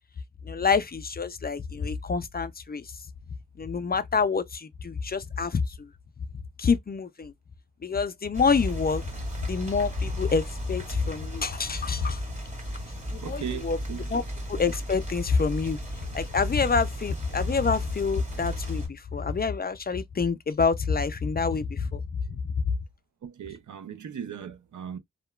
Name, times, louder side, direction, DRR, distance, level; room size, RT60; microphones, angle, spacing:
voice 1, 0.4-2.9 3.6-5.9 6.6-7.3 7.8-9.0 9.5-12.2 13.1-13.8 14.1-14.2 14.5-15.8 16.1-22.0 22.3-22.4, left 5 dB, 35° left, 0.4 m, -27 dB
sound 1, 8.3-18.9, equal, 25° right, 1.8 m, -35 dB
voice 2, 13.2-14.1 23.2-25.0, right 8 dB, 80° right, 0.6 m, -37 dB
2.8 x 2.2 x 2.2 m
wide cardioid pair, 75°, 29 cm